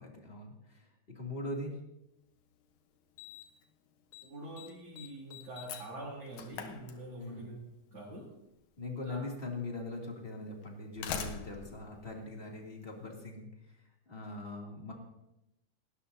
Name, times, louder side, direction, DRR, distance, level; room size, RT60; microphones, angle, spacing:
voice 1, 0.0-1.8 7.2-7.5 8.8-14.9, left 2 dB, 20° left, -1 dB, 2.4 m, -41 dB
Slam, 2.4-2.5 3.2-3.6 3.9-4.3 4.6-7.5 8.6-8.7 9.6-9.7 10.6-13.0, left 7 dB, 70° left, 2.3 m, -44 dB
voice 2, 4.2-7.6 7.9-8.3 9.0-9.2, right 1 dB, 35° right, -6 dB, 4.1 m, -45 dB
30.0 x 12.5 x 2.8 m, 0.88 s
omnidirectional pair, 3.8 m